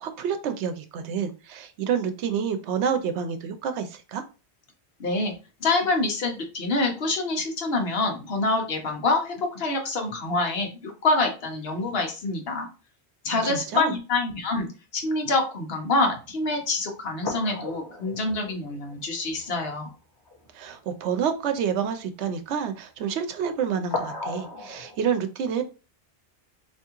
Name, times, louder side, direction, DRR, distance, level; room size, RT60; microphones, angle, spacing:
voice 1, 0.0-4.2 13.3-13.9 20.5-25.6, right 7 dB, 90° right, 9 dB, 0.9 m, -28 dB
voice 2, 5.0-5.3 5.6-12.7 13.2-19.9, left 2 dB, 60° left, 2 dB, 1.1 m, -26 dB
sound 1, 16.2-16.3 16.7-16.8 17.2-19.5 19.8-19.9 20.3-20.5 23.9-25.0, left 3 dB, 25° left, 0.9 m, -35 dB
3.5 x 2.9 x 2.9 m, 0.33 s
omnidirectional pair, 1.1 m